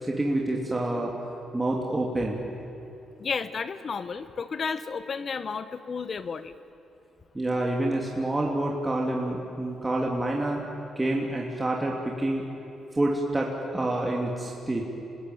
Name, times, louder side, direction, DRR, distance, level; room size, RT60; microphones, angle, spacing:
voice 1, 0.0-1.1 1.5-2.4 7.3-10.6 11.0-12.4 12.9-14.8, right 1 dB, 15° right, -1 dB, 2.8 m, -27 dB
voice 2, 3.2-6.5, left 5 dB, 45° left, 13 dB, 1.0 m, -32 dB
27.0 x 19.5 x 9.2 m, 2.9 s
cardioid pair, 90°, 0 cm